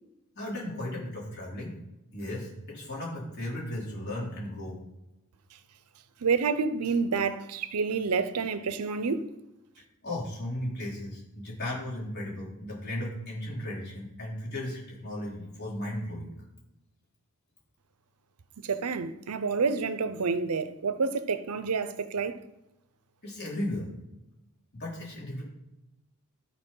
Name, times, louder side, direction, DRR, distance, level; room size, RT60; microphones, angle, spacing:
voice 1, 0.4-1.7 2.1-4.8 10.0-16.3 23.2-23.9 24.7-25.4, left 1 dB, 50° left, 3.8 m, -35 dB
voice 2, 6.2-9.3 18.6-22.4, right 5 dB, 90° right, 0.7 m, -28 dB
12.0 x 4.4 x 5.5 m
head